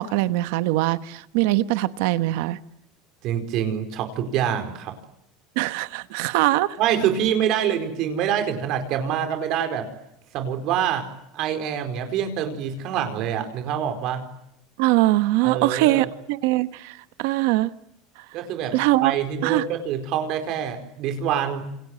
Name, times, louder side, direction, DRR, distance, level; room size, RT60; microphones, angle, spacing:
voice 1, 0.0-2.6 5.5-6.8 14.8-17.7 18.7-19.1 19.4-19.6, right 17 dB, 65° right, 1.2 m, -22 dB
voice 2, 3.2-5.0 6.8-9.9 10.3-11.0 11.3-14.2 15.4-16.1 18.3-21.6, right 9 dB, 40° right, 4.5 m, -26 dB
28.0 x 26.5 x 7.7 m
cardioid pair, 180°, 0 cm